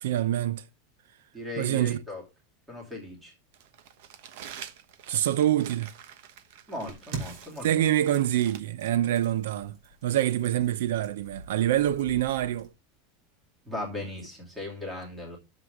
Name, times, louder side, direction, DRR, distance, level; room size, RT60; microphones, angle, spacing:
voice 1, 0.0-0.6 1.6-2.0 5.1-5.9 7.6-9.8 10.0-12.7, right 12 dB, 85° right, 0.6 m, -25 dB
voice 2, 1.3-2.2 2.7-3.3 6.7-7.9 13.6-15.4, left 1 dB, 5° right, 2.9 m, -37 dB
Crumpling crinkling, 3.5-8.6, right 9 dB, 55° right, 1.1 m, -47 dB
sound 1, 6.9-12.7, right 2 dB, 40° right, 3.3 m, -45 dB
11.5 x 7.5 x 3.7 m
supercardioid pair, 180°, 0 cm